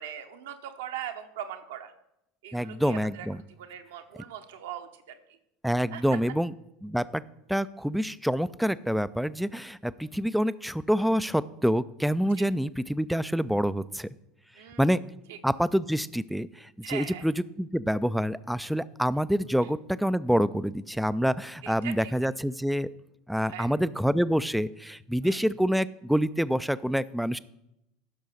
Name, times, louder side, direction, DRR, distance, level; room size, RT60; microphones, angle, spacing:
voice 1, 0.0-1.9 2.4-5.2 5.9-6.0 10.0-10.2 12.4-12.5 14.5-14.9 15.3-15.4 16.8-17.3 21.6-22.1 23.5-23.7 25.2-25.4, right 10 dB, 60° right, 6 dB, 1.1 m, -40 dB
voice 2, 2.5-3.4 5.6-6.5 6.8-7.2 7.5-14.1 14.8-15.0 15.4-22.9 23.3-27.4, equal, ahead, 16 dB, 0.4 m, -27 dB
15.5 x 6.3 x 4.1 m, 0.83 s
figure-of-eight pair, 75°, 0 cm